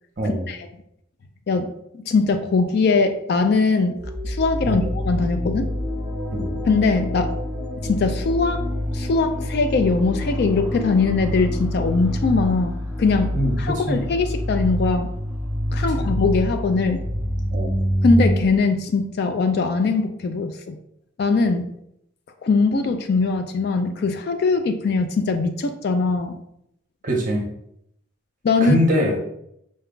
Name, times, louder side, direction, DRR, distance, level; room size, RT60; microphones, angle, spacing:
voice 1, 0.2-0.7 1.5-4.0 4.2-5.6 6.7-7.3 7.8-15.1 15.7-17.0 18.0-20.8 21.2-21.7 22.4-26.4 28.4-28.8, left 4 dB, 50° left, 7 dB, 0.3 m, -21 dB
sound 1, 4.0-18.5, equal, 10° right, 0.8 m, -26 dB
voice 2, 13.3-14.0 16.0-16.1 17.5-17.7 27.0-27.5 28.6-29.2, equal, 40° right, 0 dB, 0.7 m, -23 dB
5.2 x 2.3 x 3.7 m, 0.76 s
head